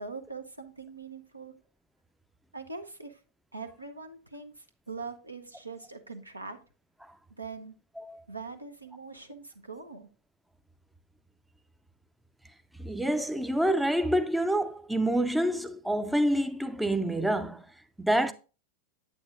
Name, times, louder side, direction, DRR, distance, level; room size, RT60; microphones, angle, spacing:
voice 1, 0.0-1.5 2.5-3.2 3.5-6.6 7.4-7.7 8.3-10.1, right 4 dB, 85° right, 0.8 m, -42 dB
voice 2, 12.8-18.3, right 1 dB, 5° right, 0.4 m, -27 dB
8.4 x 8.3 x 2.5 m
figure-of-eight pair, 90°, 0 cm